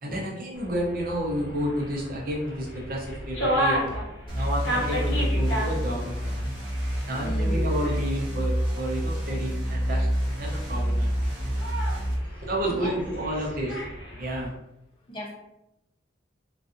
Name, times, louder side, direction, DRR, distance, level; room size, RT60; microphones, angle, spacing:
voice 1, 0.0-4.0 4.3-6.4 7.0-11.6 12.4-13.8 14.2-14.5, equal, 50° right, -2 dB, 0.6 m, -31 dB
sound 1, 0.5-14.4, equal, 65° left, 0.8 m, -34 dB
sound 2, 4.3-12.1, equal, 30° right, 0.9 m, -27 dB
voice 2, 7.1-7.7 12.7-13.0 15.1-15.3, equal, 25° left, -3 dB, 0.5 m, -34 dB
2.5 x 2.4 x 2.5 m, 0.88 s
head